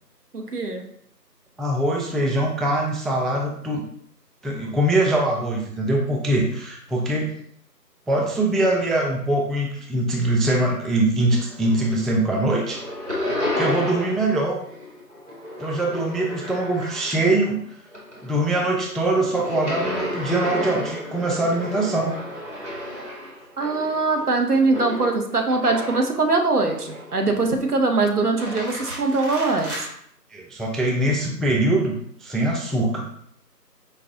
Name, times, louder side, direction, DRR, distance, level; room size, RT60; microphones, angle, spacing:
voice 1, 0.3-0.8 23.6-29.9, right 3 dB, 65° right, 4 dB, 0.7 m, -22 dB
voice 2, 1.6-3.8 4.4-7.3 8.1-12.8 13.6-14.6 15.6-17.6 18.2-22.1 30.3-33.1, right 1 dB, ahead, -1 dB, 0.4 m, -23 dB
sound 1, 11.3-12.0 12.3-14.3 14.6-17.5 17.9-26.2 26.7-27.4 28.2-29.9, left 1 dB, 45° right, 1.1 m, -32 dB
4.7 x 2.2 x 2.6 m, 0.67 s
figure-of-eight pair, 165°, 49 cm